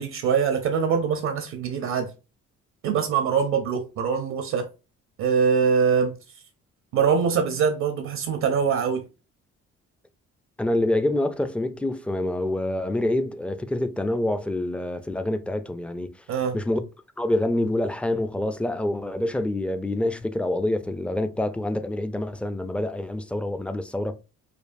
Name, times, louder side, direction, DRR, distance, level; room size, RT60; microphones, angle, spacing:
voice 1, 0.0-2.1 2.8-4.7 5.2-6.2 6.9-9.0 16.3-16.6, right 6 dB, 70° right, 0.6 m, -23 dB
voice 2, 10.6-16.1 16.5-16.8 17.2-24.2, left 1 dB, 5° left, 0.3 m, -26 dB
5.1 x 2.3 x 2.5 m
cardioid pair, 90°, 30 cm